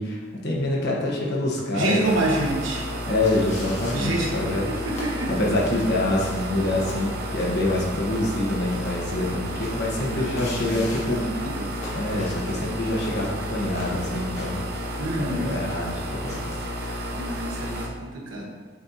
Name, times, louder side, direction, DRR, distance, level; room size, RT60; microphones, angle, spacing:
voice 1, 0.0-2.2 3.0-4.7 5.0-11.5 11.9-14.6 15.2-16.4 16.8-17.2 18.3-18.4, left 1 dB, 60° left, -3 dB, 1.3 m, -26 dB
voice 2, 1.7-2.9 3.9-4.3 4.7-5.4 10.1-10.4 10.7-11.7 15.0-15.5 17.1-18.5, right 2 dB, 85° right, -2 dB, 1.3 m, -28 dB
sound 1, 2.0-17.9, equal, 55° right, 0.7 m, -32 dB
sound 2, 3.2-17.1, left 1 dB, 35° left, 1.4 m, -44 dB
7.4 x 4.6 x 2.8 m, 1.4 s
head